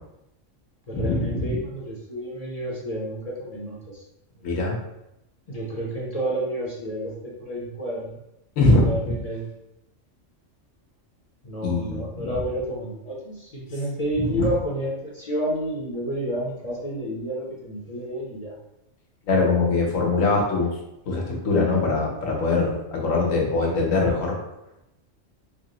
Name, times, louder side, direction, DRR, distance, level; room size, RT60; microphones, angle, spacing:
voice 1, 0.9-4.0 5.5-8.2 8.8-9.5 11.4-18.5, right 1 dB, 40° left, -5 dB, 0.6 m, -30 dB
voice 2, 4.4-4.7 8.6-8.9 11.6-12.3 14.3-14.5 19.3-20.7 21.1-24.3, left 3 dB, 90° left, -1 dB, 1.2 m, -22 dB
3.5 x 2.0 x 3.8 m, 0.86 s
omnidirectional pair, 1.3 m